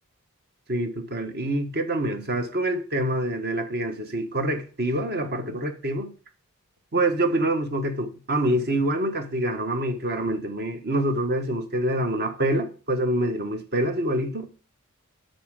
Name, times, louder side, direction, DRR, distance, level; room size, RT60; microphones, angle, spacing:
voice 1, 0.7-6.1 6.9-14.5, right 1 dB, 45° right, 1.3 m, -26 dB
9.6 x 4.4 x 6.5 m
head